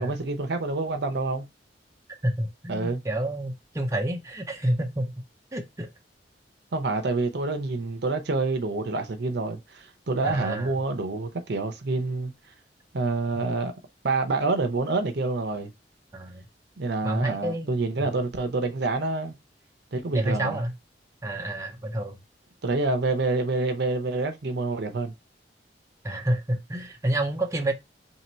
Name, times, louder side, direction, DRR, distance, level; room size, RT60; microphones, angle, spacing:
voice 1, 0.0-1.4 2.7-3.0 6.7-12.3 12.9-13.7 14.0-15.7 16.8-19.3 19.9-20.6 22.6-25.1, right 3 dB, 65° right, 0.7 m, -27 dB
voice 2, 2.2-5.1 5.5-5.9 10.2-10.7 16.1-16.4 17.0-17.7 18.0-18.1 20.1-20.7 21.2-22.2 26.0-27.7, right 1 dB, 20° right, 0.6 m, -29 dB
3.0 x 2.8 x 4.2 m
head